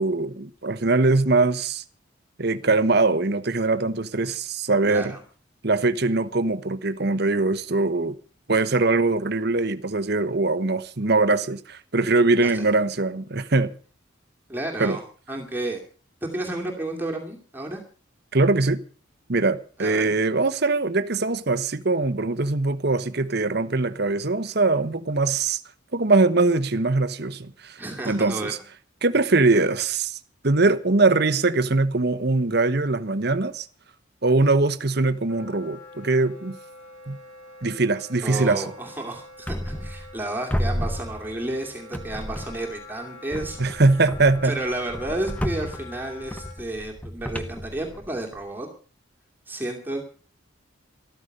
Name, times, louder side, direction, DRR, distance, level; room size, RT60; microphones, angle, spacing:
voice 1, 0.0-1.8 2.4-5.1 5.6-8.2 8.5-13.7 14.8-15.0 18.3-18.8 19.3-25.6 25.9-28.6 29.0-30.2 30.4-33.7 34.2-36.6 37.1-37.2 37.6-38.6 43.6-44.6, right 3 dB, 50° right, 1.1 m, -22 dB
voice 2, 4.9-5.2 12.4-12.6 14.5-15.0 15.3-15.8 16.2-17.8 19.8-20.1 27.8-28.5 38.2-43.6 44.4-48.7 49.5-50.1, right 1 dB, 10° right, 2.5 m, -31 dB
Wind instrument woodwind instrument, 35.3-46.6, left 3 dB, 80° left, 7.9 m, -45 dB
Plastic Sheet Fluttering, 39.5-40.2 40.5-41.6 41.9-42.8 43.3-48.4, equal, 5° left, 1.0 m, -32 dB
14.0 x 13.5 x 6.6 m
head